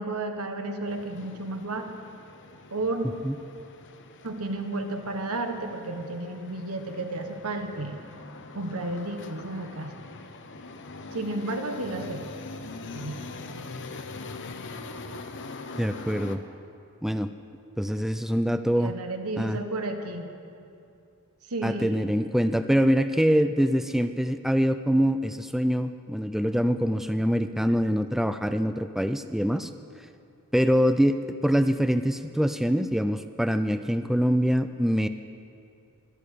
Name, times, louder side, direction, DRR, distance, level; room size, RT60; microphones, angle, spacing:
voice 1, 0.0-1.9 2.7-3.1 4.2-7.9 8.5-9.9 11.1-12.3 12.9-13.3 18.8-20.3 21.5-22.1, right 2 dB, 80° right, 6 dB, 1.4 m, -32 dB
sound 1, 0.9-16.4, left 3 dB, 55° left, 0.9 m, -43 dB
voice 2, 15.8-16.4 17.0-17.3 17.8-18.9 19.4-19.6 21.6-29.7 30.5-35.1, equal, ahead, 10 dB, 0.3 m, -24 dB
23.5 x 8.6 x 6.7 m, 2.5 s
head